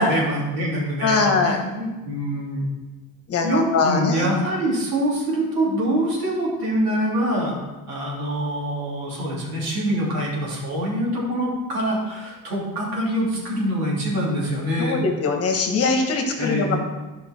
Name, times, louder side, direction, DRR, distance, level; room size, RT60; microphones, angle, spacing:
voice 1, 0.0-2.7 3.4-7.6 7.9-15.0 16.4-16.8, right 1 dB, 80° right, -4 dB, 3.0 m, -25 dB
voice 2, 1.0-1.6 3.3-4.4 14.8-16.8, left 4 dB, 40° left, 3 dB, 1.3 m, -22 dB
11.0 x 5.2 x 4.4 m, 1.2 s
cardioid pair, 135°, 36 cm